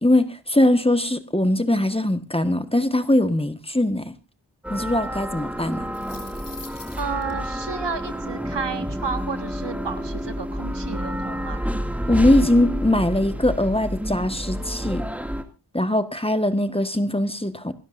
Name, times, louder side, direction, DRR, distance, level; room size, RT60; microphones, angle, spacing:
voice 1, 0.0-4.1 4.7-5.9 12.1-15.0 15.7-17.7, left 1 dB, 15° left, 1.4 m, -21 dB
sound 1, 4.6-15.4, equal, 5° right, 2.3 m, -29 dB
sound 2, 5.7-7.3, left 3 dB, 75° left, 3.2 m, -43 dB
voice 2, 7.0-11.6, right 5 dB, 75° right, 1.7 m, -32 dB
27.0 x 12.5 x 2.6 m
wide cardioid pair, 50°, 43 cm